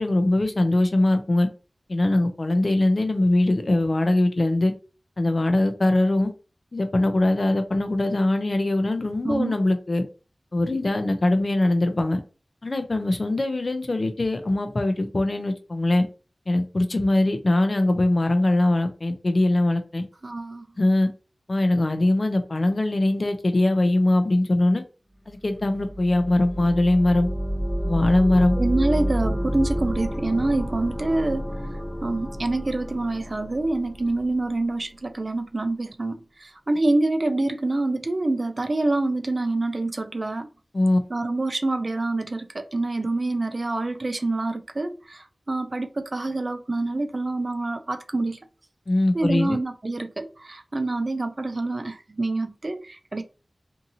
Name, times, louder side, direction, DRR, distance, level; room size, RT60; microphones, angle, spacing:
voice 1, 0.0-1.5 1.9-4.7 5.2-6.3 6.7-10.0 10.5-12.2 12.6-16.0 16.5-20.0 20.8-21.1 21.5-24.8 25.3-27.3 27.8-28.6 40.7-41.0 48.9-49.6, left 1 dB, 50° left, 0.5 m, -21 dB
voice 2, 20.2-20.6 28.6-31.5 32.0-40.5 41.1-48.4 49.1-53.2, right 2 dB, 50° right, 0.4 m, -26 dB
sound 1, 25.4-34.3, equal, 20° left, 0.9 m, -29 dB
2.7 x 2.7 x 2.7 m
wide cardioid pair, 70°, 0 cm